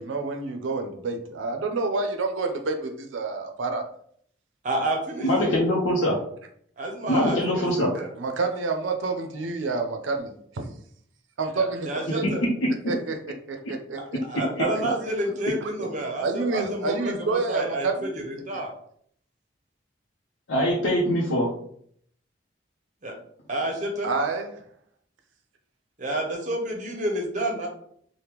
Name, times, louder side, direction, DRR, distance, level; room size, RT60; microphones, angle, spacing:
voice 1, 0.0-3.8 7.8-10.7 11.4-12.2 12.9-14.2 15.6-15.7 16.2-18.1 18.5-18.6 24.0-24.6, right 3 dB, 85° right, 5 dB, 0.5 m, -28 dB
voice 2, 4.6-5.5 6.8-8.1 11.5-12.4 14.0-18.7 23.0-23.1 23.5-24.1 26.0-27.7, right 1 dB, 40° right, 1 dB, 0.6 m, -29 dB
voice 3, 5.2-6.2 7.1-7.9 20.5-21.5, equal, 85° left, -5 dB, 0.7 m, -23 dB
3.4 x 2.1 x 2.9 m, 0.64 s
head